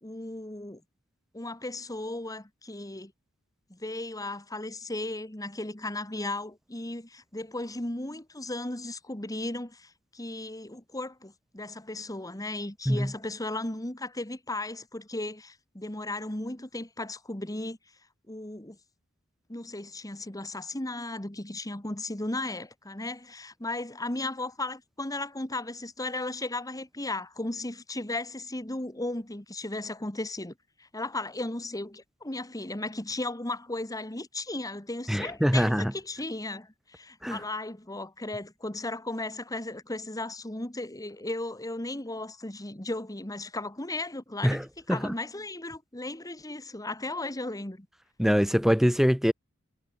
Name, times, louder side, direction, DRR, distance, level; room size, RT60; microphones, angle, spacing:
voice 1, 0.0-0.8 1.3-3.1 3.7-17.8 18.3-18.8 19.5-44.6 44.9-47.9, left 2 dB, 15° left, 2.0 m, -36 dB
voice 2, 35.1-35.9 37.2-37.4 44.4-45.1 48.2-49.3, equal, ahead, 3.2 m, -24 dB
head